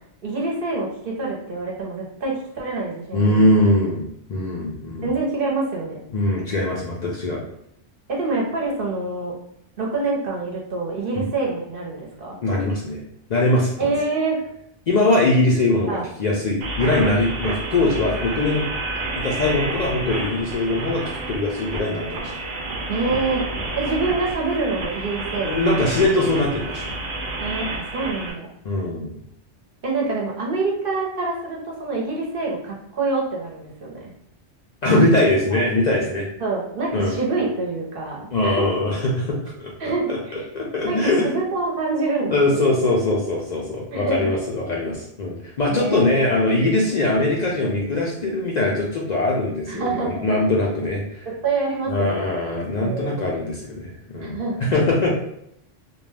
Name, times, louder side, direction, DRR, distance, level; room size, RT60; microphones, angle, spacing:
voice 1, 0.2-3.5 5.0-6.0 8.1-9.4 9.8-12.4 13.8-14.4 15.9-16.0 22.9-23.4 23.7-25.8 27.4-28.5 29.8-34.1 36.4-38.7 39.8-40.4 40.8-42.7 43.9-44.3 45.7-46.3 49.7-50.3 51.3-52.3 52.8-53.3 54.2-54.7, right 3 dB, 55° right, -2 dB, 0.9 m, -26 dB
voice 2, 3.1-5.1 6.1-7.4 11.2-11.3 12.4-13.0 13.3-13.9 14.9-18.6 19.1-22.3 25.4-27.0 28.6-29.2 34.8-36.3 36.9-37.2 38.3-40.2 40.5-41.4 42.3-51.3 51.9-55.1, left 2 dB, 55° left, -3 dB, 0.4 m, -21 dB
sound 1, 16.6-28.3, right 2 dB, 85° right, 0.9 m, -30 dB
2.5 x 2.2 x 3.2 m, 0.73 s
omnidirectional pair, 1.2 m